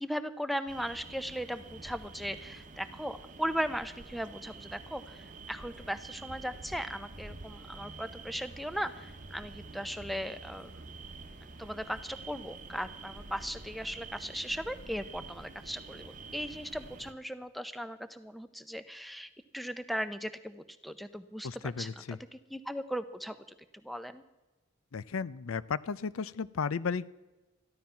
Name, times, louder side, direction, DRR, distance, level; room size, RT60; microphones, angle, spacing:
voice 1, 0.0-10.8 11.6-21.5 21.8-23.4 23.8-24.2, equal, ahead, 12 dB, 0.6 m, -38 dB
sound 1, 0.7-17.1, right 3 dB, 40° right, 1.0 m, -48 dB
voice 2, 21.4-22.2 24.9-27.1, left 5 dB, 85° left, 18 dB, 0.5 m, -34 dB
14.0 x 12.0 x 5.7 m, 1.1 s
head